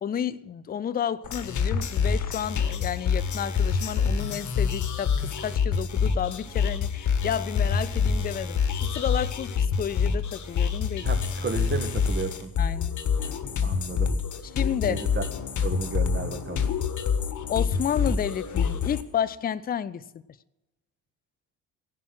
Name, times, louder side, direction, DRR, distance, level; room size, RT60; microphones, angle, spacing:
voice 1, 0.0-11.1 12.6-13.0 14.5-15.0 17.5-20.0, left 9 dB, 20° left, 0.6 m, -31 dB
sound 1, 1.2-19.0, left 6 dB, 35° left, 1.6 m, -26 dB
voice 2, 11.0-12.5 13.6-14.1 14.8-15.3 15.6-16.7, right 4 dB, 20° right, 1.9 m, -32 dB
17.0 x 11.5 x 6.1 m
figure-of-eight pair, 55°, 50 cm